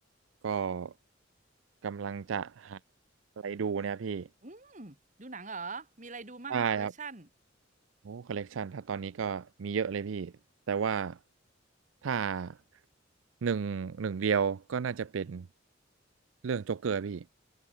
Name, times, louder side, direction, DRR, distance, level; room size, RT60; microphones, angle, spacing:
voice 1, 0.4-0.9 1.8-2.8 3.4-4.3 6.5-6.9 8.1-10.3 10.7-11.2 12.0-12.6 13.4-15.5 16.4-17.2, right 6 dB, 85° right, 0.5 m, -32 dB
voice 2, 4.4-7.3, right 4 dB, 40° right, 2.5 m, -43 dB
head